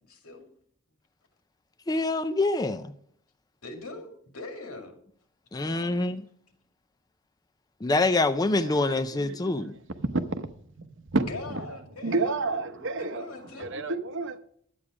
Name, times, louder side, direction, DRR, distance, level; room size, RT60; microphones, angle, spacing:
voice 1, 0.1-0.5 3.6-4.9 5.6-6.0 11.2-12.3 12.8-13.7, left 3 dB, 90° left, 2.2 m, -41 dB
voice 2, 1.9-2.9 5.5-6.2 7.8-9.8, left 2 dB, 15° left, 0.4 m, -25 dB
voice 3, 8.6-9.6 10.0-14.4, right 3 dB, 60° right, 0.8 m, -31 dB
11.5 x 8.6 x 4.9 m
head